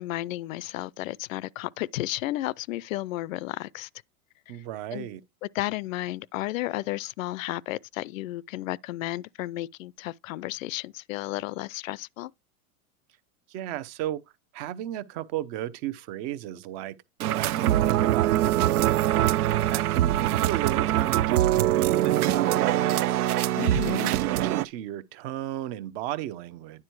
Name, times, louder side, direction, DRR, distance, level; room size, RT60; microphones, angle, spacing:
voice 1, 0.0-3.9 4.9-5.1 5.4-12.3 23.6-24.1, left 17 dB, 65° left, 0.5 m, -33 dB
voice 2, 4.5-5.2 13.5-14.2 14.5-17.0 17.3-19.2 19.7-23.2 23.6-26.8, right 13 dB, 40° right, 0.8 m, -35 dB
Shatter, 17.2-19.9, right 12 dB, 70° right, 1.3 m, -47 dB
sound 1, 17.2-24.6, right 13 dB, 85° right, 0.7 m, -23 dB
9.8 x 4.4 x 4.6 m
hypercardioid pair, 130°, 44 cm